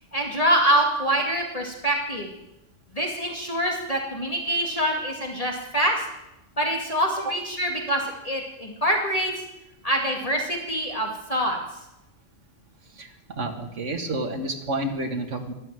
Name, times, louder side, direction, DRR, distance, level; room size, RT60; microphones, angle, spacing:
voice 1, 0.1-2.3 2.9-6.0 6.6-9.3 9.8-11.6, right 1 dB, 30° left, 0 dB, 2.4 m, -25 dB
voice 2, 13.0-15.5, right 2 dB, 80° right, 4 dB, 2.1 m, -30 dB
13.0 x 12.5 x 9.0 m, 0.91 s
omnidirectional pair, 1.2 m